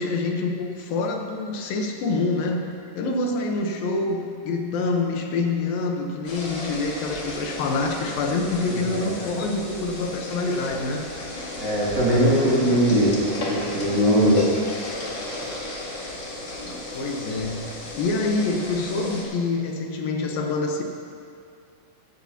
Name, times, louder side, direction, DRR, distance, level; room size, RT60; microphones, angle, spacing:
voice 1, 0.0-11.1 16.9-20.8, left 3 dB, 85° left, 2 dB, 2.8 m, -26 dB
sound 1, 6.2-19.2, left 1 dB, 40° left, 1.8 m, -33 dB
voice 2, 8.7-9.3 11.6-14.5, equal, 30° right, -8 dB, 2.9 m, -21 dB
15.5 x 14.5 x 2.9 m, 2.4 s
omnidirectional pair, 4.0 m